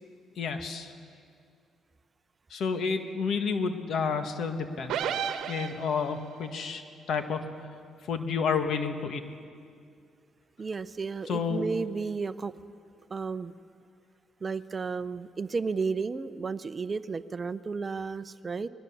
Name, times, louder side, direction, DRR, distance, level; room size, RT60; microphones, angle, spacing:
voice 1, 0.4-0.9 2.5-5.0 5.5-6.8 7.1-7.5 8.1-9.2 11.3-11.6, left 5 dB, 65° left, 7 dB, 1.7 m, -30 dB
sound 1, 4.9-6.3, right 8 dB, 85° right, 1.1 m, -32 dB
voice 2, 10.6-12.5 13.1-13.5 14.4-18.7, right 4 dB, 35° right, 14 dB, 0.6 m, -33 dB
21.5 x 21.0 x 7.1 m, 2.3 s
cardioid pair, 90°, 0 cm